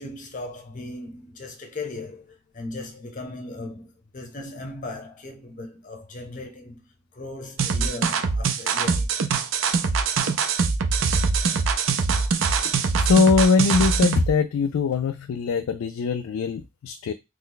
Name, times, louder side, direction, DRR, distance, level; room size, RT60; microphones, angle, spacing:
voice 1, 0.0-6.8 7.1-9.1, left 2 dB, 40° left, 0.8 m, -37 dB
sound 1, 7.6-14.3, right 5 dB, 65° right, 0.5 m, -23 dB
voice 2, 12.6-17.1, left 4 dB, 85° left, 0.3 m, -22 dB
3.0 x 2.2 x 3.8 m
head